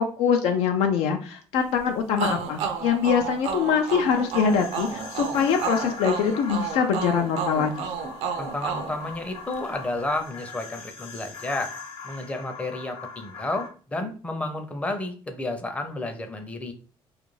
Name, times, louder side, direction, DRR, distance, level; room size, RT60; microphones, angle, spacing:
voice 1, 0.0-7.9, left 6 dB, 85° left, 4 dB, 0.4 m, -23 dB
sound 1, 2.2-9.8, right 6 dB, 75° right, 0.5 m, -32 dB
sound 2, 3.7-13.7, left 5 dB, 65° left, 0.7 m, -41 dB
voice 2, 8.4-11.7 12.0-16.7, left 2 dB, 15° left, 5 dB, 0.5 m, -31 dB
2.4 x 2.2 x 3.1 m, 0.40 s
cardioid pair, 105°, 10 cm